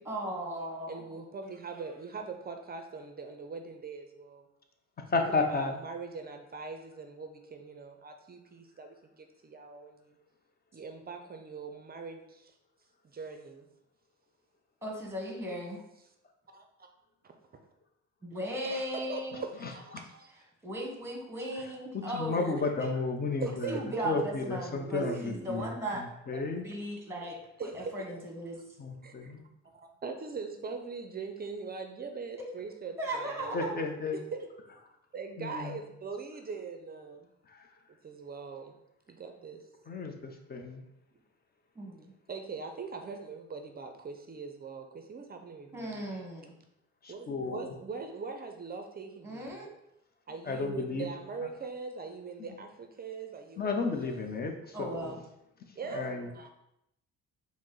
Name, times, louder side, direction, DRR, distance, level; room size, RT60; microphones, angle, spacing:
voice 1, 0.0-1.0 14.8-15.8 18.2-19.4 20.6-22.8 23.7-26.0 26.6-28.6 33.0-33.8 41.7-42.1 45.7-46.6 49.2-49.7 54.7-55.2, right 1 dB, 10° right, 0 dB, 1.2 m, -37 dB
voice 2, 0.9-4.5 5.3-10.2 10.7-12.6 13.1-13.7 16.5-16.6 18.6-20.3 22.4-22.5 23.4-24.0 25.0-25.6 26.3-26.4 27.6-28.3 29.0-29.3 29.7-33.8 34.1-34.5 35.1-37.3 38.0-38.8 39.1-39.6 42.3-46.2 47.1-49.7 50.3-54.2 55.8-56.5, right 4 dB, 30° right, 5 dB, 0.5 m, -41 dB
voice 3, 5.1-5.7 19.6-19.7 21.9-23.8 24.0-25.7 26.0-26.6 28.8-29.4 33.5-34.2 35.4-35.8 37.5-37.7 39.9-40.8 47.0-47.7 50.5-51.1 53.6-55.1 55.9-56.3, left 4 dB, 30° left, 4 dB, 0.6 m, -33 dB
4.9 x 2.1 x 3.8 m, 0.83 s
cardioid pair, 90°, 30 cm